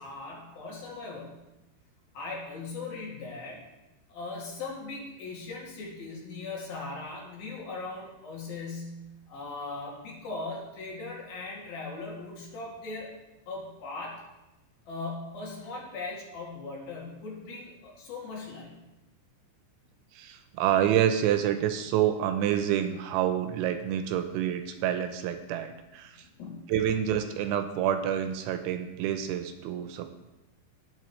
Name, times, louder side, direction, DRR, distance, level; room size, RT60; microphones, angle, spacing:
voice 1, 0.0-1.4 2.1-3.6 4.1-13.1 13.5-14.2 14.9-18.8 26.4-26.7, left 3 dB, 55° left, -4 dB, 3.8 m, -39 dB
voice 2, 20.1-26.3 26.7-30.1, right 10 dB, 80° right, 8 dB, 3.0 m, -28 dB
18.5 x 7.6 x 3.2 m, 1.0 s
omnidirectional pair, 5.5 m